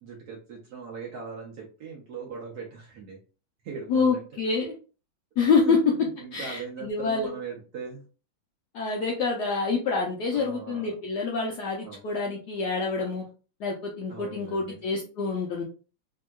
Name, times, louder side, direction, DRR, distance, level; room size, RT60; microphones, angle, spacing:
voice 1, 0.0-3.2 3.6-4.2 5.5-5.8 6.2-8.0 10.3-10.9 11.8-12.0 14.1-14.8, right 5 dB, 65° right, -2 dB, 1.0 m, -39 dB
voice 2, 3.9-4.7 5.4-5.8 6.3-7.3 8.7-13.2 13.6-15.6, left 4 dB, 70° left, 0 dB, 0.9 m, -27 dB
3.4 x 2.8 x 2.3 m, 0.36 s
omnidirectional pair, 2.3 m